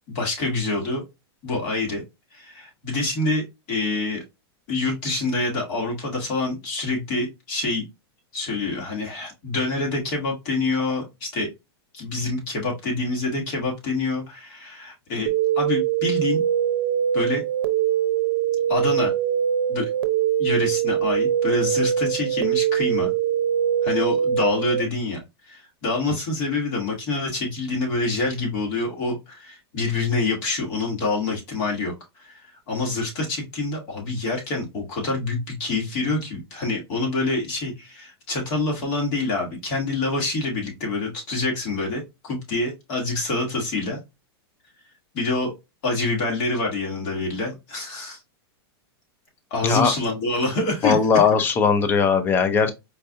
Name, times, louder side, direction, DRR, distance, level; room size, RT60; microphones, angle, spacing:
voice 1, 0.1-1.0 1.4-2.0 2.3-4.2 4.7-7.8 8.3-11.5 11.9-16.4 17.1-17.4 18.7-19.1 19.7-19.9 20.4-23.1 23.8-32.4 32.7-44.0 45.1-45.5 45.8-48.2 49.5-51.0, left 3 dB, 40° left, 1.8 m, -26 dB
sound 1, 15.3-24.8, right 9 dB, 60° right, 0.7 m, -23 dB
voice 2, 50.8-52.7, left 6 dB, 15° left, 0.5 m, -19 dB
4.5 x 2.6 x 2.4 m
supercardioid pair, 155°, 14 cm